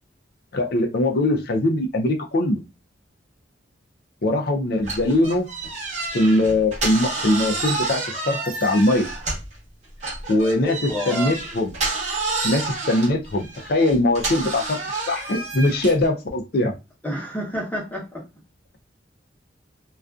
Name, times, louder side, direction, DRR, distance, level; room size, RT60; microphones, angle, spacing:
voice 1, 0.5-2.6 4.2-5.5 6.1-9.1 10.3-11.7 12.4-14.8 15.1-16.7, left 1 dB, 55° left, 4 dB, 0.4 m, -21 dB
sound 1, 4.8-9.6 10.0-16.1, right 3 dB, 35° right, 0.8 m, -29 dB
voice 2, 10.6-11.4 17.0-18.2, equal, 10° left, -4 dB, 0.8 m, -29 dB
2.4 x 2.3 x 2.3 m, 0.26 s
head